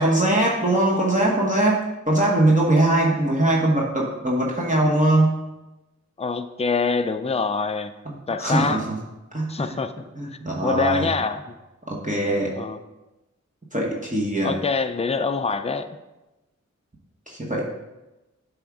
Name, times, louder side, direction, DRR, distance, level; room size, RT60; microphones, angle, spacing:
voice 1, 0.0-5.4 8.1-9.0 9.3-9.8 10.2-11.1 11.9-12.5 13.7-14.6 17.3-17.6, right 1 dB, 25° right, -4 dB, 1.1 m, -21 dB
voice 2, 6.2-7.9 8.3-8.8 9.5-9.9 10.6-11.4 12.5-12.8 14.4-15.9, left 4 dB, 20° left, 8 dB, 0.4 m, -25 dB
7.7 x 3.5 x 4.7 m, 1.0 s
wide cardioid pair, 45°, 30 cm